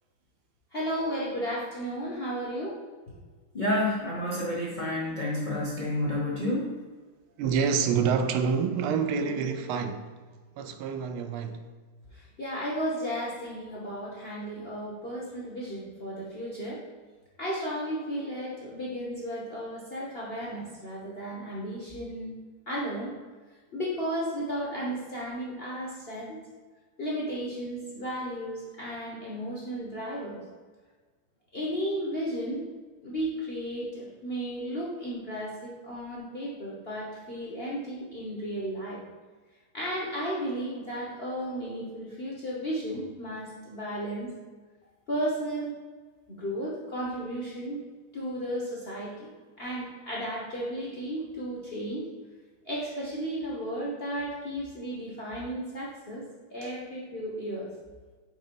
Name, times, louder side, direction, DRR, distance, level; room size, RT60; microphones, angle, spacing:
voice 1, 0.7-2.8 12.1-16.8 17.4-22.4 22.7-23.1 23.7-26.4 27.0-30.4 31.5-32.6 33.0-39.0 39.7-44.3 45.1-45.7 46.3-47.8 48.1-49.3 49.6-52.0 52.7-56.2 56.5-57.7, equal, 45° left, 0.7 m, -34 dB
voice 2, 3.5-6.8, left 1 dB, 85° left, 0.4 m, -29 dB
voice 3, 7.4-10.2 10.6-11.7, right 6 dB, 80° right, 1.4 m, -27 dB
5.2 x 3.8 x 5.1 m
omnidirectional pair, 2.4 m